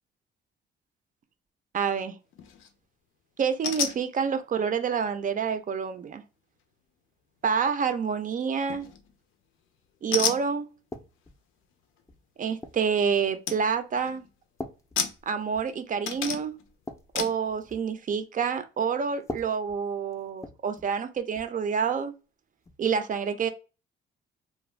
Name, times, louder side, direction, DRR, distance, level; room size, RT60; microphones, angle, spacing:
voice 1, 1.7-2.2 3.4-6.2 7.4-8.9 10.0-10.7 12.4-14.2 15.3-16.5 17.1-22.1 22.8-23.5, right 6 dB, 40° right, 0.4 m, -28 dB
sound 1, 2.3-2.7 3.6-4.0 8.7-9.1 10.1-10.5 12.9-13.0 13.5-13.6 14.0-14.3 15.0-15.7 16.1-16.6 17.2-17.4, left 7 dB, 85° left, 0.5 m, -31 dB
sound 2, 10.9-11.4 12.1-12.9 13.6-13.9 14.6-15.8 16.1-16.2 16.6-17.9 19.2-21.0 21.3-21.6 22.6-22.8, left 2 dB, 15° left, 0.5 m, -43 dB
2.4 x 2.1 x 3.2 m
cardioid pair, 90°, 20 cm